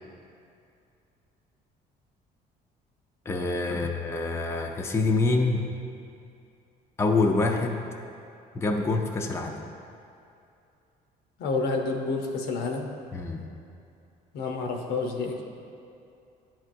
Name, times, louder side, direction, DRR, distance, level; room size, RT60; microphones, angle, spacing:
voice 1, 3.3-5.7 7.0-7.8 8.5-9.6 13.1-13.5, left 3 dB, 15° left, 2 dB, 0.4 m, -26 dB
voice 2, 11.4-12.9 14.3-15.4, left 3 dB, 75° left, 2 dB, 0.7 m, -29 dB
10.5 x 4.5 x 2.6 m, 2.6 s
cardioid pair, 110°, 17 cm